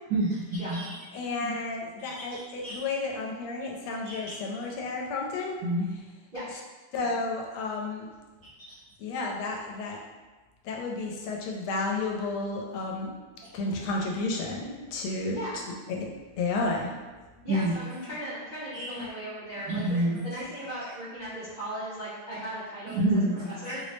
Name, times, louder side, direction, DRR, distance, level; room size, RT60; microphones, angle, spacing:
voice 1, 0.1-0.9 2.0-2.8 4.1-4.2 5.6-5.9 17.5-17.8 18.7-18.9 19.7-20.2 22.9-23.7, right 1 dB, 80° right, -5 dB, 0.9 m, -28 dB
voice 2, 1.1-5.6 6.9-8.1 9.0-10.0 10.6-13.1 13.5-15.5 15.9-16.1 16.4-16.9 19.0-19.1, left 3 dB, 80° left, -1 dB, 1.4 m, -32 dB
voice 3, 15.3-15.6 17.4-19.8 20.2-23.0 23.4-23.8, equal, 55° right, -12 dB, 0.5 m, -37 dB
4.4 x 2.0 x 3.1 m, 1.3 s
omnidirectional pair, 2.4 m